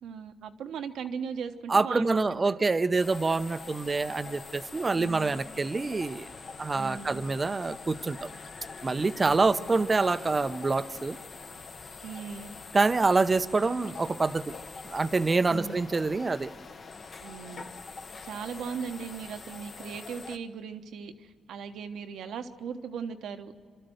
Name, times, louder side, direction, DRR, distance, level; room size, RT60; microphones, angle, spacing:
voice 1, 0.0-2.6 5.0-5.4 6.7-7.2 9.2-9.7 12.0-12.6 13.6-13.7 15.5-15.9 17.2-17.7 18.2-23.5, right 6 dB, 75° right, 7 dB, 1.2 m, -38 dB
voice 2, 1.7-6.3 6.6-8.3 8.8-11.2 12.7-14.5 14.8-16.5, right 3 dB, 25° right, 13 dB, 0.7 m, -26 dB
sound 1, 3.0-20.4, left 4 dB, 40° left, 1.0 m, -44 dB
29.0 x 12.5 x 7.9 m, 2.2 s
cardioid pair, 90°, 0 cm